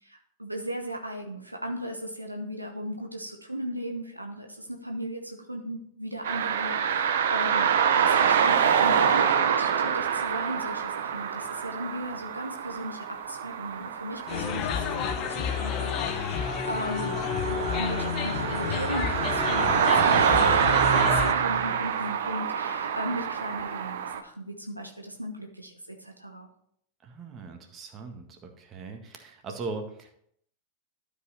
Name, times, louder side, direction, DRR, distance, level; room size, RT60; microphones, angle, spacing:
voice 1, 0.0-17.1 17.5-26.5, equal, 85° right, 3 dB, 1.0 m, -37 dB
sound 1, 6.2-24.2, right 7 dB, 60° right, 0.8 m, -26 dB
sound 2, 14.3-21.3, left 7 dB, 35° left, 0.9 m, -30 dB
voice 2, 27.0-30.2, right 3 dB, 30° right, 4 dB, 1.6 m, -39 dB
12.0 x 5.2 x 4.4 m, 0.69 s
figure-of-eight pair, 90°, 0 cm